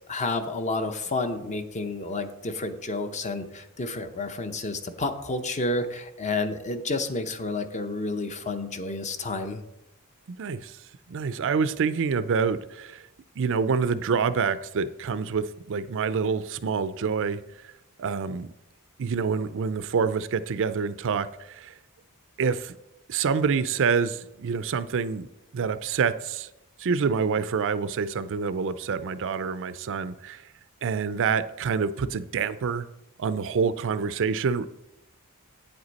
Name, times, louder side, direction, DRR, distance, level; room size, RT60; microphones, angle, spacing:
voice 1, 0.1-9.6, left 2 dB, 35° left, 8 dB, 0.7 m, -30 dB
voice 2, 10.4-10.8 11.1-13.0 13.4-17.7 18.0-18.5 19.0-21.7 22.4-22.7 23.1-25.3 25.5-26.5 26.8-30.4 30.8-32.9 33.2-34.7, right 5 dB, 60° right, 14 dB, 0.4 m, -27 dB
8.8 x 7.9 x 4.1 m, 0.89 s
head